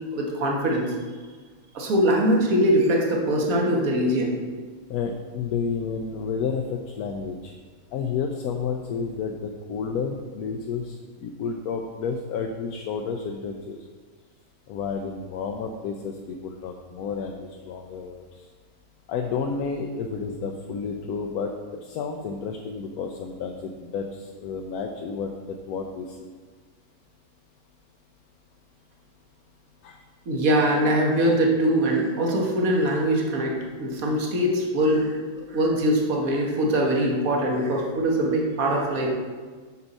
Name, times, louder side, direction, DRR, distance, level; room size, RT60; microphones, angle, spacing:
voice 1, 0.1-0.9 1.7-4.3 30.3-35.2 35.5-39.1, right 1 dB, 70° right, -1 dB, 1.7 m, -22 dB
voice 2, 4.9-7.5 7.9-11.0 11.2-13.8 14.7-18.4 19.1-26.3 29.8-30.0, left 5 dB, 85° left, 2 dB, 1.1 m, -31 dB
7.0 x 6.6 x 4.1 m, 1.5 s
omnidirectional pair, 1.5 m